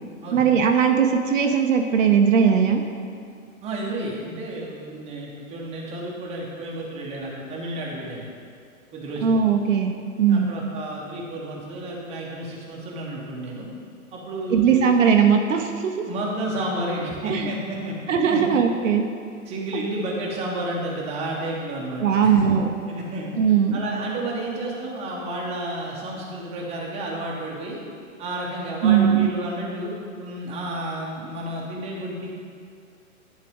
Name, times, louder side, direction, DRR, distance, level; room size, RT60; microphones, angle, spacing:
voice 1, 0.3-2.8 9.2-9.9 10.2-10.5 14.5-15.9 17.2-17.5 18.1-19.0 19.7-19.8 22.0-22.7 23.3-23.8 28.8-29.3, right 7 dB, 65° right, 4 dB, 0.7 m, -19 dB
voice 2, 3.6-8.3 8.9-9.3 10.3-13.7 14.1-14.7 16.1-18.0 18.3-18.4 19.5-22.5 22.9-23.3 23.7-27.8 28.2-29.9 30.2-32.3, right 1 dB, 15° right, -3 dB, 0.9 m, -31 dB
10.0 x 3.7 x 3.5 m, 2.3 s
hypercardioid pair, 130°, 42 cm